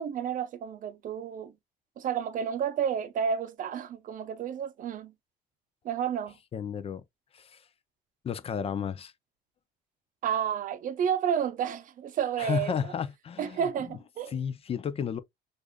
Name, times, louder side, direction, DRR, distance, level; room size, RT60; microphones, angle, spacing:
voice 1, 0.0-1.5 2.0-5.1 5.8-6.3 10.2-12.7 13.4-14.3, right 8 dB, 55° right, 0.6 m, -31 dB
voice 2, 6.5-7.0 7.3-7.6 8.2-9.1 12.4-14.0 14.3-15.2, left 7 dB, 35° left, 0.4 m, -33 dB
6.5 x 2.5 x 2.3 m
cardioid pair, 110°, 17 cm